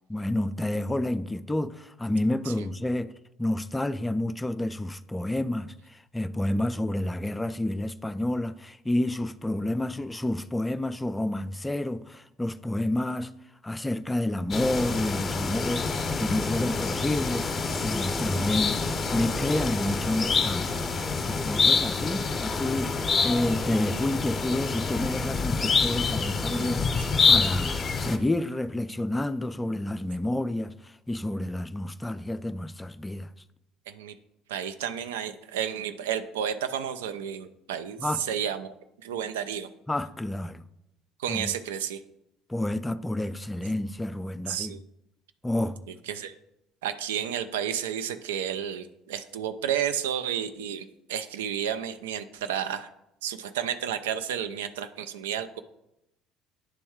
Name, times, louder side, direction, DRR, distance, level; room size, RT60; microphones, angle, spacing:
voice 1, 0.1-3.1 3.4-13.3 13.6-17.5 17.8-18.8 19.1-20.9 21.3-22.9 23.2-33.3 38.0-38.2 39.9-40.7 41.3-41.5 42.5-44.8 45.4-45.8, left 1 dB, 10° left, 0.4 m, -29 dB
sound 1, 14.5-28.2, left 4 dB, 30° left, 0.8 m, -27 dB
voice 2, 34.5-38.7 39.0-39.7 41.2-42.0 44.5-44.8 46.1-46.3 46.8-52.9 53.2-55.6, right 9 dB, 70° right, 0.4 m, -31 dB
9.7 x 3.5 x 4.6 m
figure-of-eight pair, 55°, 0 cm